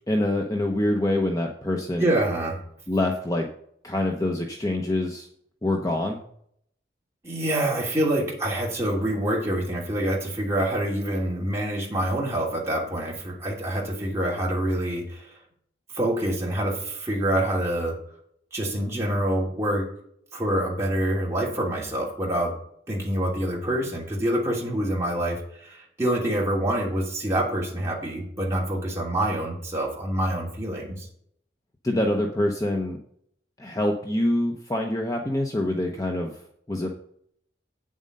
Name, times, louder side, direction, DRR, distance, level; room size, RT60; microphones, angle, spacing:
voice 1, 0.1-2.1 2.9-3.5 3.8-5.3 5.6-6.2 31.8-33.0 33.6-36.4 36.7-36.9, left 1 dB, 20° left, 2 dB, 0.8 m, -25 dB
voice 2, 2.0-2.6 7.2-15.3 15.9-17.9 18.5-19.9 20.3-22.5 22.9-31.1, right 1 dB, 15° right, -4 dB, 2.9 m, -26 dB
8.9 x 7.5 x 5.4 m, 0.67 s
head